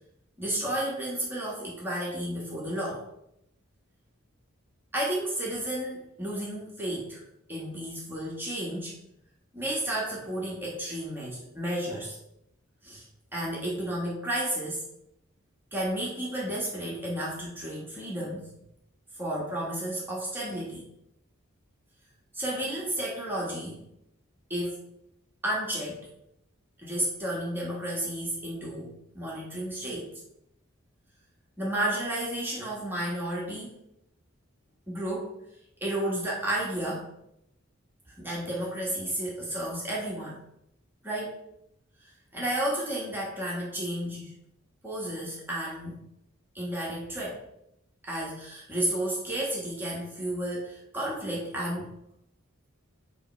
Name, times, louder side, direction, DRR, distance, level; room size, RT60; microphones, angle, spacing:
voice 1, 0.4-3.0 4.9-7.2 7.5-9.0 9.5-12.2 12.8-13.1 13.3-14.9 15.7-18.5 19.2-20.9 22.3-23.8 24.5-24.8 25.4-26.1 26.8-30.1 31.6-33.7 34.9-35.4 35.8-37.1 38.2-40.4 41.0-41.4 42.0-44.3 44.8-46.0 46.5-47.4 48.0-51.9, right 1 dB, 10° right, -5 dB, 1.3 m, -32 dB
7.9 x 3.0 x 4.4 m, 0.79 s
head